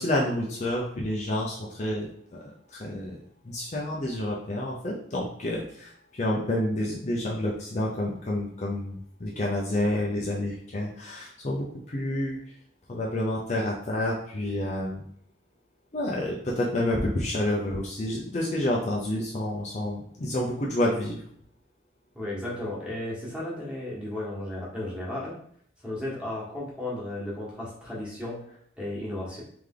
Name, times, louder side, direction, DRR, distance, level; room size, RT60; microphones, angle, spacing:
voice 1, 0.0-12.6 12.9-15.0 15.9-21.2, left 1 dB, 35° left, -3 dB, 0.5 m, -29 dB
voice 2, 22.1-25.3 25.8-28.4 28.8-29.4, left 1 dB, 5° right, -6 dB, 1.4 m, -34 dB
3.4 x 3.3 x 3.7 m, 0.65 s
head